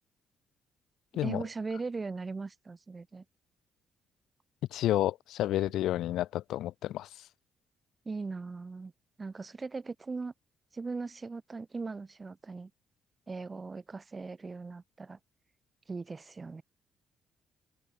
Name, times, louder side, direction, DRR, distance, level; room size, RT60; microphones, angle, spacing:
voice 1, 1.2-3.2 8.1-8.9 9.2-10.3 10.7-12.7 13.3-15.2 15.9-16.6, right 4 dB, 30° right, 1.8 m, -39 dB
voice 2, 4.7-7.1, left 13 dB, 85° left, 2.7 m, -30 dB
cardioid pair, 90°, 0 cm